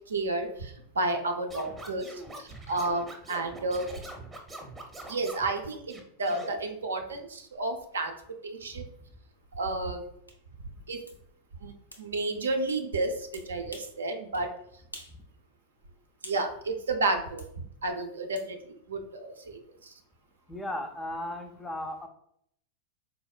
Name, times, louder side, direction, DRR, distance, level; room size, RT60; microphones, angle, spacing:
voice 1, 0.1-3.9 5.1-8.2 8.4-8.9 9.6-10.1 10.9-11.0 11.6-14.5 16.2-17.4 17.8-19.9, right 2 dB, 70° right, 4 dB, 0.4 m, -31 dB
Scratching (performance technique), 1.5-5.5 5.9-6.5, right 1 dB, 15° right, 0.7 m, -44 dB
sound 1, 10.3-10.4 11.1-11.2 11.9-12.1 13.3-14.0 14.3-14.5 14.9-15.2 15.5-16.5 17.4-17.5 18.4-18.5, left 1 dB, 85° left, 0.5 m, -47 dB
voice 2, 20.5-22.1, left 1 dB, 10° left, 6 dB, 0.4 m, -36 dB
4.3 x 2.0 x 2.3 m, 0.69 s
figure-of-eight pair, 90°, 0 cm